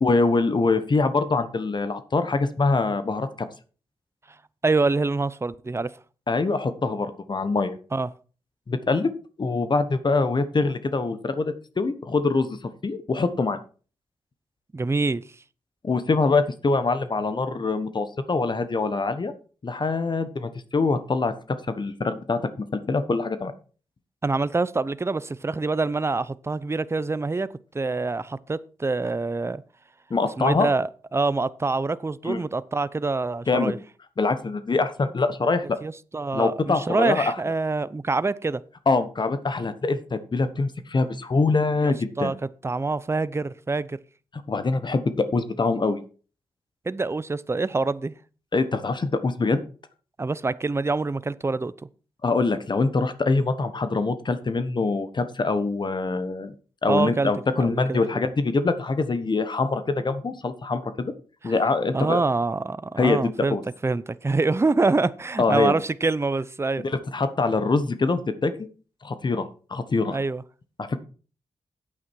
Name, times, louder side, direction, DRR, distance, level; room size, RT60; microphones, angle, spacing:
voice 1, 0.0-3.5 6.3-7.8 8.7-9.1 9.4-12.6 12.8-13.6 15.8-19.3 19.6-22.4 22.9-23.5 30.1-30.7 32.2-32.5 33.5-33.7 34.2-35.8 36.3-37.3 38.9-42.3 44.5-46.0 48.5-49.6 52.2-56.5 56.8-61.1 61.4-62.2 63.0-63.6 65.4-65.7 66.8-68.7 69.0-70.2 70.8-71.0, left 3 dB, 45° left, 1.2 m, -24 dB
voice 2, 4.6-5.9 7.9-8.1 14.7-15.2 24.2-27.5 27.7-29.6 30.4-33.8 35.8-38.6 41.8-42.3 42.6-44.0 46.9-48.1 50.2-51.7 56.9-57.3 57.6-58.2 61.4-61.5 61.9-63.6 63.8-66.8 70.1-70.4, right 3 dB, 25° right, 0.6 m, -25 dB
8.6 x 8.5 x 4.6 m
supercardioid pair, 45°, 11 cm